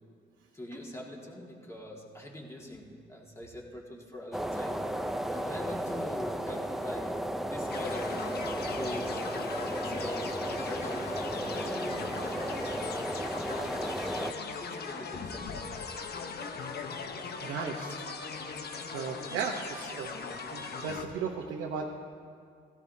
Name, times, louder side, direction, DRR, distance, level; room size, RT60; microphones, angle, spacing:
voice 1, 0.5-4.8 5.3-7.1 7.5-8.3 8.7-9.2 9.5-10.2 10.6-13.1 13.5-15.6, left 1 dB, 15° left, -2 dB, 2.1 m, -43 dB
sound 1, 4.3-14.3, right 1 dB, ahead, 0.6 m, -34 dB
sound 2, 7.7-21.0, left 5 dB, 55° left, 1.0 m, -39 dB
sound 3, 9.9-17.0, left 4 dB, 75° left, 1.5 m, -49 dB
voice 2, 17.4-18.0 18.9-20.1 20.5-22.0, right 5 dB, 90° right, 0 dB, 1.0 m, -35 dB
16.5 x 14.5 x 2.8 m, 2.2 s
cardioid pair, 90°, 20 cm